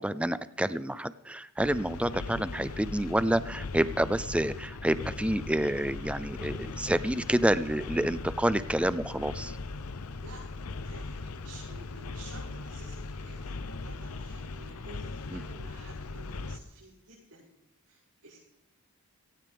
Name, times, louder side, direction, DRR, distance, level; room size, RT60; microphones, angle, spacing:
voice 1, 0.0-9.5 15.3-15.4, right 1 dB, 5° right, 15 dB, 0.4 m, -28 dB
sound 1, 1.6-16.6, left 3 dB, 80° left, 0.7 m, -39 dB
voice 2, 10.8-17.5 17.8-18.4, right 2 dB, 90° right, -10 dB, 5.9 m, -52 dB
18.0 x 16.5 x 3.5 m, 0.87 s
head